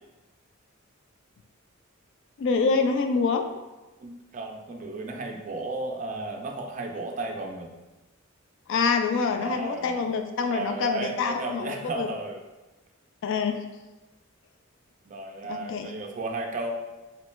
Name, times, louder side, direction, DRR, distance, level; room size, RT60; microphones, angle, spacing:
voice 1, 2.4-3.5 8.7-12.1 13.2-13.6 15.5-15.9, left 4 dB, 65° left, 6 dB, 0.3 m, -26 dB
voice 2, 4.0-7.7 9.2-10.0 10.4-12.4 15.1-16.7, right 2 dB, 40° right, 2 dB, 0.3 m, -34 dB
3.1 x 3.1 x 3.0 m, 1.1 s
head